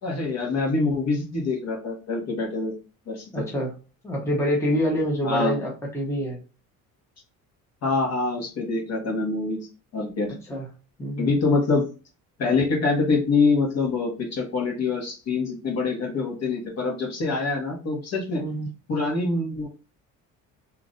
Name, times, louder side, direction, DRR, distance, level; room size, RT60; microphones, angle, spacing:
voice 1, 0.0-2.7 3.1-3.4 5.2-5.5 7.8-9.6 9.9-10.3 11.2-11.9 12.4-18.4 18.9-19.7, left 3 dB, 55° left, 0 dB, 1.5 m, -25 dB
voice 2, 3.3-3.7 4.0-6.4 10.5-10.7 11.0-11.3 18.4-18.7, equal, 10° left, -1 dB, 0.8 m, -26 dB
3.0 x 2.5 x 3.9 m, 0.34 s
cardioid pair, 150°, 32 cm